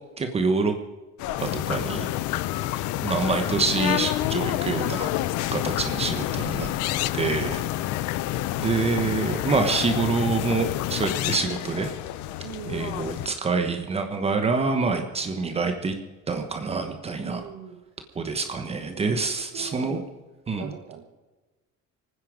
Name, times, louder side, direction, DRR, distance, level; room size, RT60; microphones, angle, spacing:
voice 1, 0.2-0.7 1.4-2.1 3.0-5.1 5.5-6.7 7.1-7.6 8.6-11.9 12.7-15.9 16.3-17.5 18.2-20.0 20.5-20.7, right 4 dB, 20° right, 6 dB, 1.1 m, -26 dB
sound 1, 1.2-13.3, left 14 dB, 75° left, 0.8 m, -31 dB
sound 2, 1.4-11.4, left 15 dB, 55° left, 0.5 m, -30 dB
voice 2, 12.4-13.3 17.2-17.8 18.2-18.4 18.9-20.1 20.6-21.0, right 9 dB, 65° right, 1 dB, 1.7 m, -42 dB
25.0 x 9.7 x 5.1 m, 1.2 s
cardioid pair, 170°, 29 cm